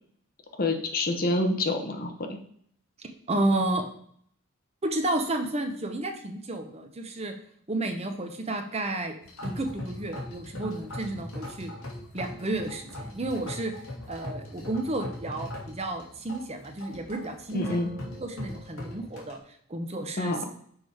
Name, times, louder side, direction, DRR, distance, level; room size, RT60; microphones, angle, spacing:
voice 1, 0.6-2.4 17.5-17.9 20.2-20.4, left 2 dB, 40° left, 6 dB, 0.8 m, -27 dB
voice 2, 3.0-3.8 4.8-7.3 7.7-9.2 9.4-11.7 12.1-13.7 14.1-17.8 18.1-19.4 19.7-20.4, right 2 dB, 30° right, 5 dB, 0.8 m, -31 dB
sound 1, 9.2-19.3, left 1 dB, 65° left, 2.2 m, -40 dB
6.3 x 5.1 x 4.8 m, 0.63 s
head